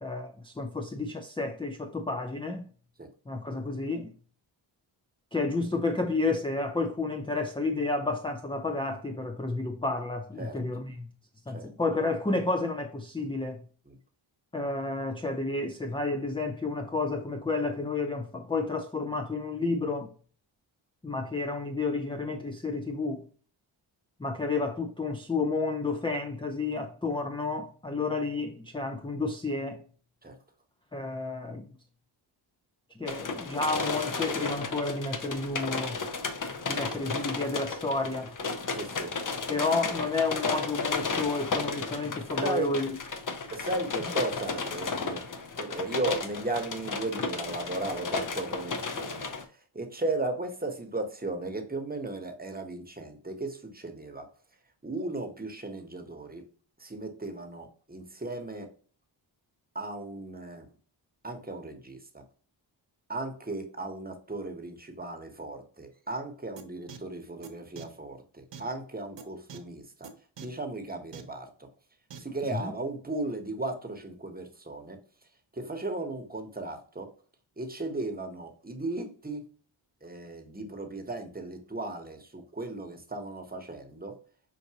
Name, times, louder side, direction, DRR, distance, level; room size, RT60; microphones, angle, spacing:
voice 1, 0.0-2.7 3.3-4.1 5.3-11.1 11.5-13.7 14.5-20.1 21.0-23.3 24.2-29.8 30.9-31.7 33.0-36.0 36.7-38.4 39.5-43.0 72.4-72.7, left 3 dB, 10° left, 0.5 m, -31 dB
sound 1, 33.1-49.4, left 4 dB, 40° left, 0.8 m, -33 dB
voice 2, 38.7-39.1 42.4-42.7 43.5-45.2 45.6-49.3 49.7-54.3 54.8-56.4 56.8-58.7 59.7-60.7 61.2-62.2 63.1-70.1 70.4-71.5 72.2-75.0 75.5-77.1 77.6-79.5 80.0-84.2, right 2 dB, 20° right, 1.1 m, -36 dB
sound 2, 66.6-66.7 66.9-67.0 67.4-67.5 67.8-67.9 68.5-68.6 69.2-69.3 69.5-69.6 70.0-70.1 70.4-70.5 71.1-71.2 72.1-72.2, right 7 dB, 60° right, 0.9 m, -43 dB
5.8 x 2.6 x 2.9 m
cardioid pair, 45°, 49 cm